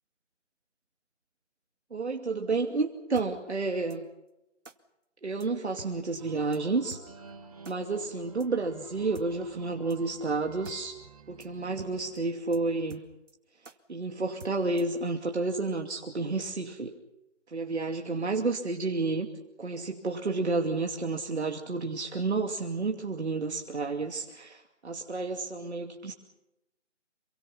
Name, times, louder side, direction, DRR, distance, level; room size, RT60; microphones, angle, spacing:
voice 1, 1.9-4.0 5.2-7.0 7.7-11.0 11.3-13.0 13.9-16.9 17.5-19.3 19.6-26.1, right 3 dB, 60° right, 2 dB, 2.7 m, -30 dB
sound 1, 3.2-3.3 3.9-4.0 4.6-4.8 5.4-5.5 5.8-5.9 6.2-6.3 6.5-6.6 6.9-7.0 7.6-7.8 8.4-8.5 9.1-9.3 9.9-10.0 10.3-10.4 10.6-10.8 11.0-11.1 11.4-11.5 11.8-11.9 12.2-12.3 12.5-12.6 12.9-13.3 13.6-13.8 14.4-15.0, right 3 dB, 85° right, 2.3 m, -47 dB
sound 2, 6.2-12.8, right 4 dB, 30° right, 2.5 m, -51 dB
28.0 x 24.0 x 5.9 m, 0.91 s
figure-of-eight pair, 165°, 37 cm